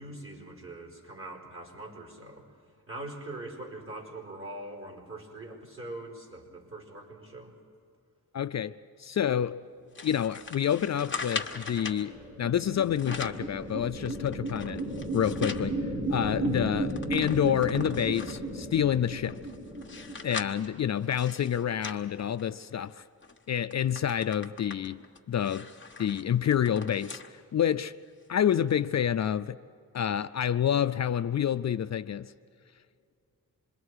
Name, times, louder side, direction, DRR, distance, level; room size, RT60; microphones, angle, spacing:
voice 1, 0.0-2.4 2.9-7.5, right 2 dB, 40° right, 4.7 m, -42 dB
voice 2, 8.3-9.6 10.0-14.8 15.1-15.8 16.1-19.4 20.2-23.1 23.5-25.7 26.0-27.9 28.3-29.6 29.9-32.3, left 9 dB, 50° left, 0.4 m, -28 dB
sound 1, 10.0-12.0 12.8-13.5 14.0-15.7 16.1-16.2 16.5-18.5 19.1-22.8 23.2-23.4 23.7-27.3 27.7-27.8 28.7-28.8, left 4 dB, 35° left, 1.3 m, -41 dB
sound 2, 11.3-21.0, right 1 dB, 55° right, 6.9 m, -35 dB
26.5 x 22.0 x 4.8 m
cardioid pair, 85°, 35 cm